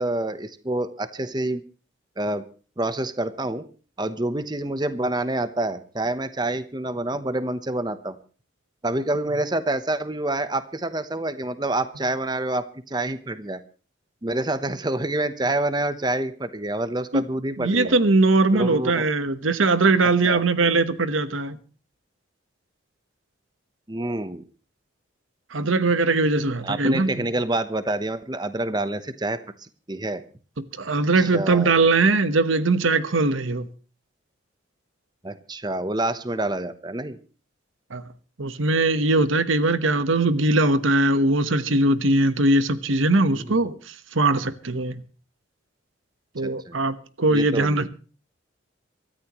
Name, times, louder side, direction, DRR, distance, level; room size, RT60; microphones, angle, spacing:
voice 1, 0.0-1.6 2.2-2.4 2.8-3.6 4.0-8.2 8.8-13.6 14.2-18.0 18.5-19.0 20.2-20.4 23.9-24.4 26.6-30.2 31.2-31.8 35.2-37.2 39.8-39.9 43.3-43.6 46.4-46.8 47.3-47.9, right 2 dB, 20° right, 0.9 m, -27 dB
voice 2, 17.6-21.6 25.5-27.2 30.8-33.7 37.9-38.0 38.4-43.8 44.1-45.0 46.3-47.9, right 2 dB, 85° right, 1.2 m, -20 dB
24.5 x 13.5 x 3.1 m
head